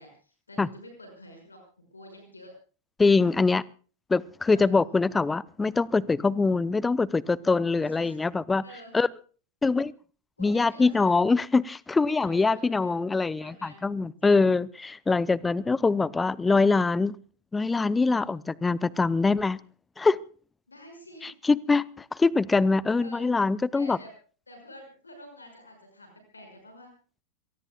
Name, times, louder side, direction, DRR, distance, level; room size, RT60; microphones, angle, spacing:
voice 1, 0.0-1.6 1.9-2.6 4.4-4.7 7.8-8.2 8.6-8.9 10.4-11.2 12.2-13.0 13.3-13.9 14.2-14.5 18.1-18.4 20.7-21.3 22.9-23.3 23.7-24.1 24.5-26.9, equal, 80° left, 5.8 m, -48 dB
voice 2, 3.0-3.6 4.1-8.6 8.9-9.1 9.6-9.9 10.4-17.2 17.5-19.6 20.0-20.2 21.2-24.0, left 3 dB, 10° left, 0.6 m, -23 dB
26.5 x 19.0 x 2.3 m
figure-of-eight pair, 90°, 0 cm